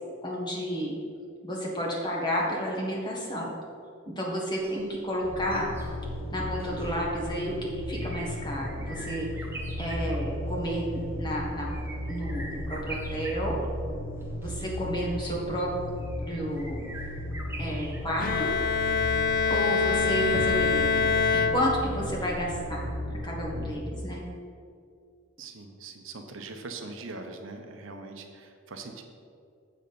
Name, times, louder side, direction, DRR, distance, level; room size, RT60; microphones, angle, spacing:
voice 1, 0.2-0.9 1.4-3.5 4.2-5.7 6.3-9.3 9.8-11.7 12.1-13.6 14.4-15.7 16.2-16.8 17.6-18.5 19.5-22.8 23.1-24.2, equal, 20° left, -3 dB, 1.5 m, -31 dB
sound 1, 4.5-20.4 20.7-20.8, right 2 dB, 10° right, 0.9 m, -46 dB
sound 2, 5.2-23.7, equal, 75° left, 1.1 m, -35 dB
Bowed string instrument, 18.2-22.2, left 5 dB, 45° left, 0.4 m, -25 dB
voice 2, 25.4-29.0, right 3 dB, 75° right, 5 dB, 0.8 m, -42 dB
7.5 x 4.2 x 6.8 m, 2.3 s
head